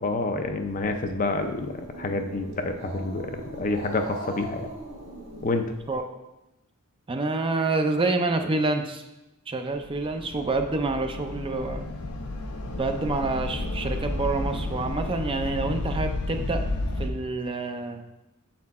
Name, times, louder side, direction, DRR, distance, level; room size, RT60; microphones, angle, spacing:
voice 1, 0.0-4.6 5.4-5.7, left 3 dB, 35° left, 6 dB, 0.5 m, -28 dB
Growling, 0.6-6.0, right 1 dB, 55° right, 1.7 m, -40 dB
voice 2, 7.1-9.0 9.5-11.8 12.8-16.6 17.0-18.0, right 3 dB, 25° right, 5 dB, 0.4 m, -27 dB
sound 1, 9.8-17.1, left 2 dB, 85° left, 0.8 m, -32 dB
7.7 x 4.3 x 4.1 m, 0.94 s
head